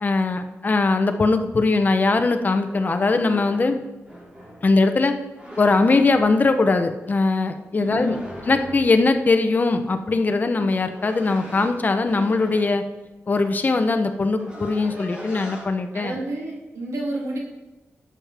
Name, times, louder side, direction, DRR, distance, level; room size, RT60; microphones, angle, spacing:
voice 1, 0.0-3.8 4.6-5.1 5.6-8.2 8.5-12.8 13.3-16.2, left 3 dB, 35° left, 8 dB, 0.7 m, -20 dB
sound 1, 2.7-4.7 5.3-6.4 7.8-9.0 10.5-12.8 13.7-13.8 14.1-15.7, equal, 20° right, 2.7 m, -40 dB
voice 2, 7.7-8.2 15.9-17.4, right 2 dB, 85° right, -3 dB, 2.6 m, -30 dB
12.0 x 7.3 x 3.5 m, 1.1 s
wide cardioid pair, 120°, 5 cm